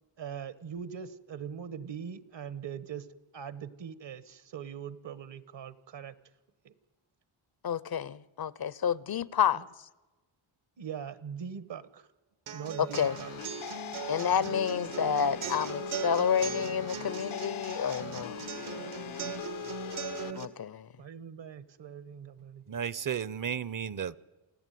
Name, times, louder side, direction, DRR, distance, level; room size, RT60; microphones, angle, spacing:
voice 1, 0.2-3.1 3.3-6.1 6.6-6.7 9.5-9.6 10.8-12.1 12.5-13.3 21.0-22.6, right 7 dB, 65° right, 1.4 m, -41 dB
voice 2, 7.6-9.6 13.0-13.1 14.1-18.4 20.3-20.9, left 8 dB, 50° left, 0.8 m, -29 dB
sound 1, 12.5-20.4, right 6 dB, 80° right, 2.0 m, -39 dB
sound 2, 12.9-20.3, left 10 dB, 80° left, 1.2 m, -41 dB
voice 3, 22.7-24.2, right 8 dB, 40° right, 0.9 m, -33 dB
28.0 x 15.5 x 9.3 m
cardioid pair, 65°, 47 cm